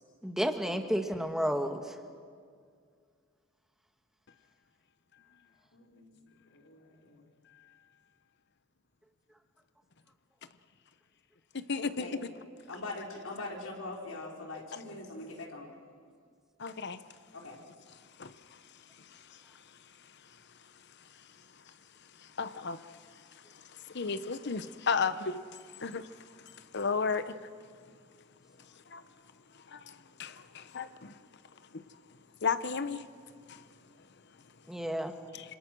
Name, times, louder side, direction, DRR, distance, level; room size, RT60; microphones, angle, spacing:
voice 1, 0.2-2.0 34.7-35.1, equal, ahead, 1.5 m, -31 dB
voice 2, 5.7-6.1 6.5-7.2 12.0-12.1 12.7-15.7 17.3-17.6, left 2 dB, 90° left, 4.8 m, -42 dB
voice 3, 11.5-12.3 16.6-17.0 18.2-19.8 20.0-20.4 21.0-21.3 21.6-21.7 22.1-27.5 28.7-29.0 29.5-31.2 31.7-31.8 32.4-33.0 33.5-33.6, left 5 dB, 55° left, 0.9 m, -36 dB
27.0 x 26.5 x 6.2 m
head